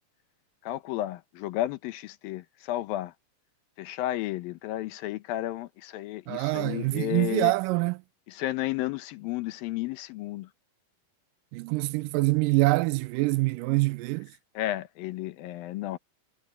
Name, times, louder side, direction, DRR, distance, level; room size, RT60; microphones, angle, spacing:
voice 1, 0.6-3.1 3.8-7.5 8.3-10.5 14.5-16.0, left 14 dB, 90° left, 2.8 m, -32 dB
voice 2, 6.3-8.0 11.5-14.3, right 22 dB, 80° right, 2.1 m, -25 dB
omnidirectional pair, 4.0 m